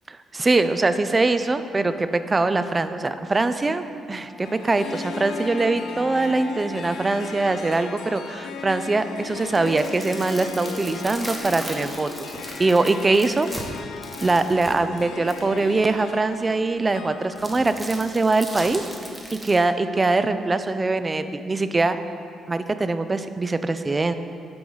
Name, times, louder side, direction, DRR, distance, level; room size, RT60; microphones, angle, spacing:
voice 1, 0.3-12.3 12.6-13.5 14.2-18.8 19.3-22.0 22.5-24.1, right 3 dB, 25° right, 10 dB, 0.3 m, -22 dB
Bowed string instrument, 3.7-7.8, left 1 dB, 15° left, 1.0 m, -42 dB
Harp, 4.4-18.9, left 6 dB, 70° left, 0.4 m, -37 dB
sound 1, 9.3-15.6 17.4-19.6, right 1 dB, 5° right, 1.0 m, -38 dB
8.4 x 4.6 x 4.0 m, 2.4 s
cardioid pair, 90°, 0 cm